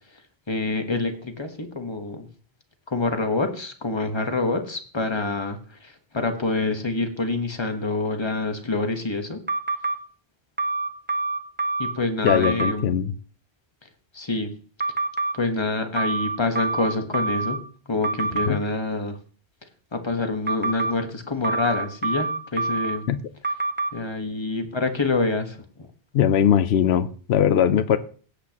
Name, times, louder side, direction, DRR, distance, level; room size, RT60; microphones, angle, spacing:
voice 1, 0.5-2.3 2.9-9.4 11.8-13.0 14.1-14.5 15.3-17.6 17.9-19.2 19.9-23.1 23.9-25.6, left 3 dB, 25° left, 1.2 m, -26 dB
sound 1, 9.5-10.0 10.6-11.9 12.3-12.7 14.8-15.3 16.0-17.6 18.0-18.5 20.5-20.9 21.4-23.0 23.4-23.9, right 3 dB, 10° right, 0.7 m, -26 dB
voice 2, 12.2-13.1 18.5-18.6 23.1-23.2 26.1-28.0, left 9 dB, 80° left, 0.9 m, -20 dB
17.0 x 8.2 x 2.9 m
omnidirectional pair, 1.1 m